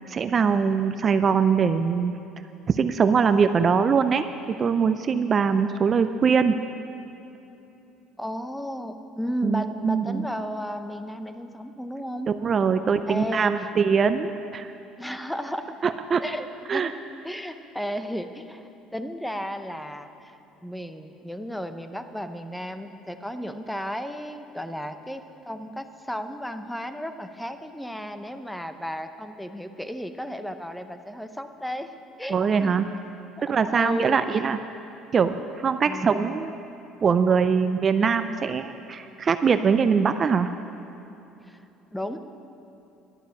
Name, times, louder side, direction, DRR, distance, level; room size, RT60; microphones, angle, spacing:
voice 1, 0.1-2.1 2.7-6.6 9.4-10.2 12.3-14.7 15.8-16.2 16.7-16.9 32.3-32.9 33.5-34.6 35.1-36.5 37.0-40.5, right 6 dB, 35° right, 10 dB, 0.4 m, -22 dB
voice 2, 8.2-12.3 13.1-13.7 15.0-15.7 16.2-17.0 17.2-18.6 18.9-20.4 20.6-31.9 32.2-32.8 33.7-34.2 35.9-36.5 41.5-41.7 41.9-42.2, equal, 5° left, 8 dB, 0.7 m, -34 dB
11.5 x 7.2 x 9.0 m, 2.9 s
cardioid pair, 110°, 0 cm